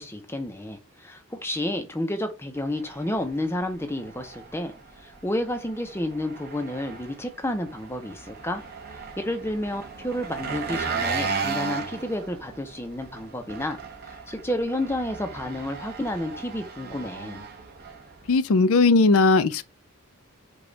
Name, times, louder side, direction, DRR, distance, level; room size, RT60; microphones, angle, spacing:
voice 1, 0.0-8.6 8.9-13.8 14.1-17.4, left 1 dB, 10° left, 0.6 m, -31 dB
Engine, 2.6-18.4, right 5 dB, 45° right, 1.0 m, -36 dB
voice 2, 18.3-19.6, left 3 dB, 70° left, 0.5 m, -18 dB
5.0 x 2.3 x 3.9 m
head